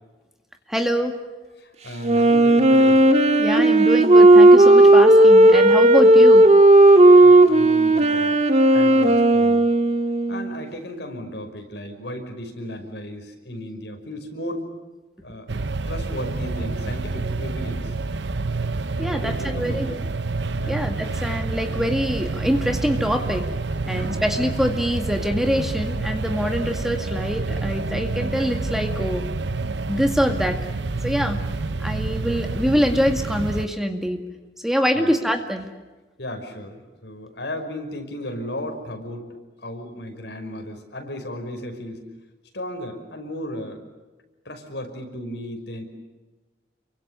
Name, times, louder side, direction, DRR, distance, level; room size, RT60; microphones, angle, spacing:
voice 1, 0.7-1.2 3.4-6.5 19.0-19.9 20.7-23.5 23.9-29.3 29.9-30.6 31.0-31.4 31.8-34.2 34.6-35.7, equal, ahead, 5 dB, 2.0 m, -24 dB
voice 2, 1.6-3.0 7.2-8.4 8.7-9.7 10.3-14.7 15.2-15.5 15.9-17.9 19.1-20.0 20.6-20.8 23.8-24.1 34.9-35.1 36.2-39.3 39.6-42.1 42.5-43.8 44.5-45.8, left 1 dB, 75° left, 5 dB, 5.7 m, -35 dB
Wind instrument woodwind instrument, 2.0-10.6, right 1 dB, 40° right, 1.8 m, -13 dB
sound 1, 15.5-33.7, right 3 dB, 80° right, 0.9 m, -28 dB
29.5 x 24.5 x 6.9 m, 1.2 s
head